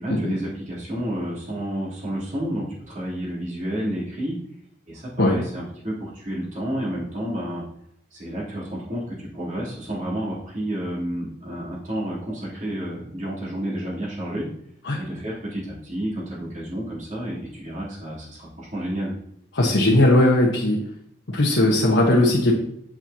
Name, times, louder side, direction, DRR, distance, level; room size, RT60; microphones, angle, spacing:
voice 1, 0.0-4.4 4.9-7.6 8.1-14.5 15.0-19.1, right 1 dB, 40° right, -6 dB, 3.4 m, -30 dB
voice 2, 19.5-20.8 21.3-22.5, left 1 dB, 90° left, -3 dB, 1.4 m, -18 dB
8.9 x 7.8 x 2.9 m, 0.72 s
head